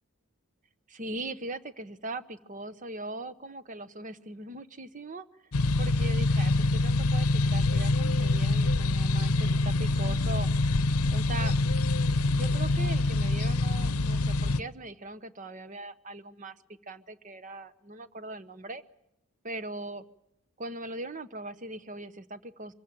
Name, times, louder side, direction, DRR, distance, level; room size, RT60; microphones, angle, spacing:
voice 1, 0.9-5.3 5.8-10.5 11.1-11.5 12.3-18.8 19.4-20.0 20.6-22.7, right 2 dB, 35° right, 13 dB, 0.9 m, -40 dB
sound 1, 5.5-14.6, left 2 dB, 90° left, 0.8 m, -25 dB
24.0 x 15.5 x 9.3 m, 0.83 s
head